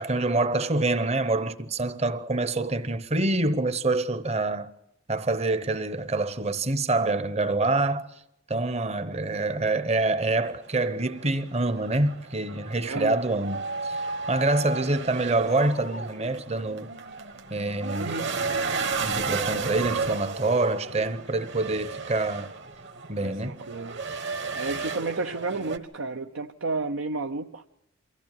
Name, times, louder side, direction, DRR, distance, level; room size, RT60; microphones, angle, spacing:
voice 1, 0.0-4.7 5.1-8.1 8.5-14.0 14.3-16.9 17.5-18.2 19.0-22.5 23.1-23.6, right 2 dB, 30° right, 0.9 m, -26 dB
sound 1, 10.3-25.8, right 4 dB, 55° right, 1.6 m, -33 dB
voice 2, 12.9-13.2 18.0-18.3 23.2-24.0 24.5-27.6, right 3 dB, 75° right, 0.7 m, -32 dB
24.0 x 15.0 x 9.0 m
head